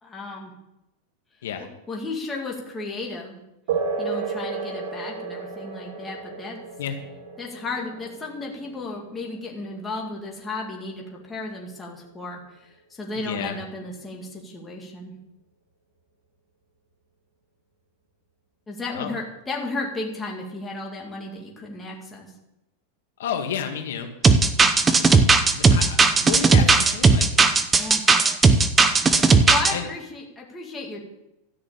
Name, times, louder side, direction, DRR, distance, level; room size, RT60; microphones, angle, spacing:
voice 1, 0.0-0.5 1.9-3.3 4.0-6.6 7.4-15.1 18.7-22.3 27.8-28.0 29.2-31.0, left 3 dB, 10° left, -1 dB, 2.3 m, -34 dB
sound 1, 3.7-11.7, right 5 dB, 65° right, 3.9 m, -33 dB
voice 2, 13.2-13.6 18.9-19.1 23.2-24.1 25.5-25.9 26.1-27.3 29.7-29.9, left 8 dB, 85° left, 4 dB, 1.9 m, -30 dB
sound 2, 24.2-29.7, right 4 dB, 10° right, 0.7 m, -16 dB
13.5 x 6.2 x 8.5 m, 0.92 s
supercardioid pair, 165°, 0 cm